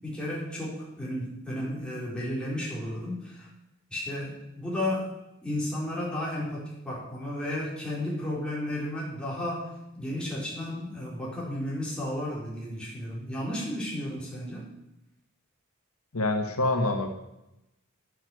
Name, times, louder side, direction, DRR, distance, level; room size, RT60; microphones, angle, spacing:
voice 1, 0.0-3.5 3.9-5.1 5.4-14.7, left 1 dB, 5° left, -6 dB, 4.3 m, -33 dB
voice 2, 16.1-17.1, left 2 dB, 90° left, 4 dB, 1.6 m, -26 dB
9.6 x 8.5 x 8.0 m, 0.90 s
head